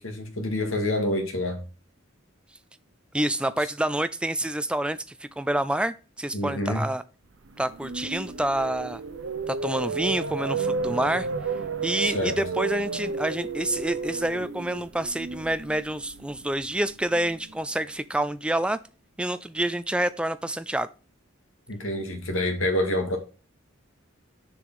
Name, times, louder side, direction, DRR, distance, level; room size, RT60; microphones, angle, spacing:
voice 1, 0.0-1.6 6.3-6.8 12.0-12.3 21.7-23.2, left 1 dB, 80° left, 4 dB, 2.1 m, -27 dB
voice 2, 3.1-7.0 7.6-9.0 9.5-11.3 11.8-18.8 19.2-20.9, right 1 dB, 5° right, 12 dB, 0.3 m, -28 dB
sound 1, 7.5-17.6, right 4 dB, 65° right, 0.7 m, -33 dB
6.9 x 5.0 x 5.5 m, 0.34 s
head